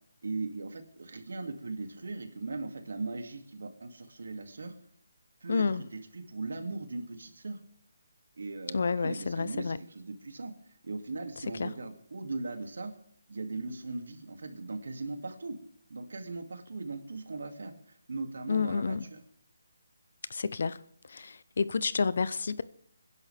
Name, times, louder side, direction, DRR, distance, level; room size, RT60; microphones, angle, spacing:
voice 1, 0.2-4.7 5.4-7.6 8.4-10.5 10.8-12.9 13.3-15.6 15.9-19.2, right 3 dB, 75° right, 2.5 m, -39 dB
voice 2, 5.5-5.8 8.7-9.8 11.6-11.7 18.5-19.1 20.3-20.8 21.1-22.6, left 4 dB, 60° left, 0.7 m, -29 dB
23.5 x 11.0 x 3.5 m
hypercardioid pair, 170°, 0 cm